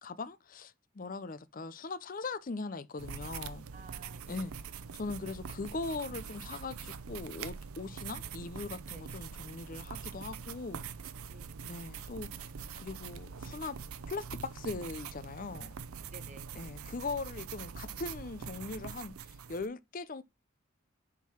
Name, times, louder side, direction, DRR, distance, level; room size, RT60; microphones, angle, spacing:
voice 1, 0.0-3.6 4.3-4.5 4.9-10.8 11.6-12.5 12.8-13.8 14.1-15.7 16.6-20.2, left 3 dB, 40° left, 0.5 m, -40 dB
sound 1, 3.0-19.7, right 6 dB, 85° right, 0.6 m, -44 dB
voice 2, 3.7-4.6 8.0-8.1 8.9-9.1 11.3-11.6 16.1-16.5, right 3 dB, 35° right, 0.8 m, -53 dB
7.3 x 3.8 x 5.8 m
head